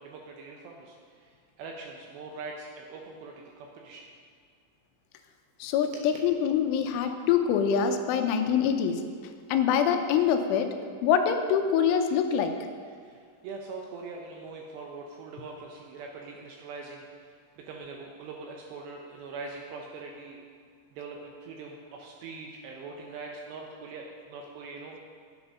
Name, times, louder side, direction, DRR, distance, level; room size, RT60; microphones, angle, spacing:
voice 1, 0.0-4.1 5.9-6.0 12.3-12.4 13.0-20.4 20.9-25.0, right 4 dB, 80° right, 1 dB, 2.6 m, -42 dB
voice 2, 5.6-9.0 9.5-10.7 11.0-12.5, left 7 dB, 85° left, 6 dB, 3.1 m, -24 dB
9.8 x 8.7 x 5.5 m, 2.1 s
omnidirectional pair, 5.7 m